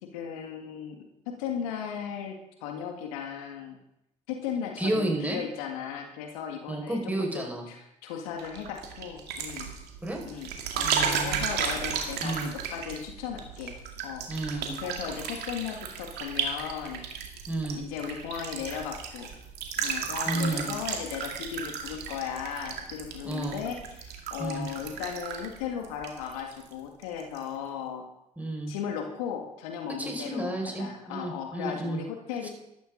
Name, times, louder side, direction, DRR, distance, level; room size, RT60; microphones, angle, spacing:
voice 1, 0.0-3.8 4.3-9.7 10.2-13.7 14.0-14.2 14.8-17.0 17.7-19.3 19.8-28.0 28.7-32.5, left 8 dB, 75° left, 3 dB, 1.8 m, -36 dB
voice 2, 4.8-5.4 6.7-7.7 10.0-10.2 10.8-11.4 12.2-12.5 14.3-14.8 17.5-17.9 20.3-20.7 23.2-23.6 24.4-24.7 28.4-28.7 30.0-32.0 32.4-32.5, right 2 dB, 10° right, 0 dB, 5.3 m, -31 dB
sound 1, 8.4-26.7 27.0-27.4, right 7 dB, 65° right, 2.3 m, -34 dB
13.5 x 13.0 x 3.9 m, 0.84 s
hypercardioid pair, 55°, 18 cm